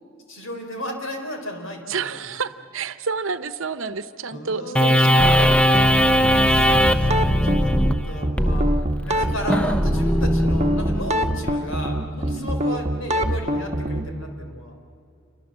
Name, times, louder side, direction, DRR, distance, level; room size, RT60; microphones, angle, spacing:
voice 1, 0.3-2.2 4.3-5.3 6.5-7.7 8.1-8.7 9.1-14.7, equal, 75° left, 4 dB, 4.0 m, -34 dB
voice 2, 1.9-5.8 12.2-12.6, right 5 dB, 70° right, 13 dB, 0.9 m, -30 dB
sound 1, 4.7-11.5, equal, 5° left, 0.7 m, -19 dB
sound 2, 6.8-14.2, equal, 35° right, 1.1 m, -25 dB
28.0 x 23.5 x 7.5 m, 2.5 s
head